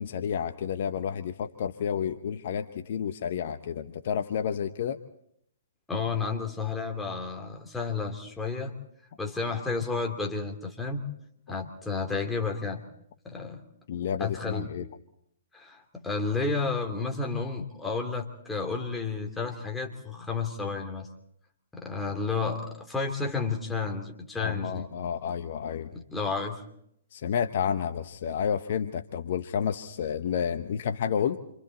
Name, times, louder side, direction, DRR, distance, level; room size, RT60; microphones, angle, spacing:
voice 1, 0.0-5.0 13.9-14.9 24.4-25.9 27.1-31.4, left 8 dB, 50° left, 9 dB, 1.0 m, -30 dB
voice 2, 5.9-8.7 9.2-11.0 11.5-12.8 13.2-13.6 14.2-14.7 15.5-21.1 21.7-24.9 25.9-26.6, left 4 dB, 5° left, 1 dB, 3.0 m, -31 dB
28.5 x 26.0 x 4.2 m, 0.72 s
figure-of-eight pair, 125°, 0 cm